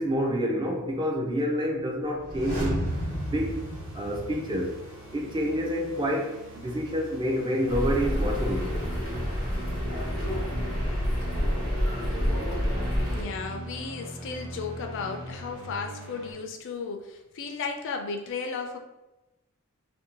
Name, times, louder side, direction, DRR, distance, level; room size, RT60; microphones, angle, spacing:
voice 1, 0.0-2.9 3.2-3.7 3.9-4.8 5.1-8.7, equal, 20° right, 1 dB, 0.4 m, -28 dB
sound 1, 2.1-5.0 5.3-5.4, equal, 40° right, 1.0 m, -33 dB
sound 2, 2.8-16.3, right 1 dB, 80° right, 0.8 m, -41 dB
sound 3, 7.7-13.2, equal, 65° right, 1.2 m, -28 dB
voice 2, 13.1-18.8, left 5 dB, 60° left, 4 dB, 0.4 m, -35 dB
2.6 x 2.1 x 2.8 m, 0.99 s
head